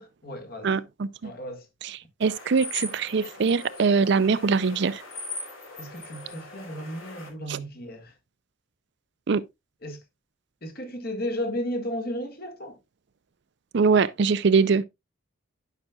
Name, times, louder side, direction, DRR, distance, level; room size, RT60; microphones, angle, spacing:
voice 1, 0.0-0.7 1.2-1.7 5.8-8.1 9.8-10.0 10.6-12.8, equal, 50° left, 1.7 m, -34 dB
voice 2, 0.6-1.3 1.8-5.0 7.5-7.6 9.3-9.4 13.7-14.8, right 5 dB, 60° right, 0.5 m, -23 dB
sound 1, 2.2-7.3, left 2 dB, 90° left, 2.9 m, -40 dB
11.5 x 5.8 x 2.3 m
head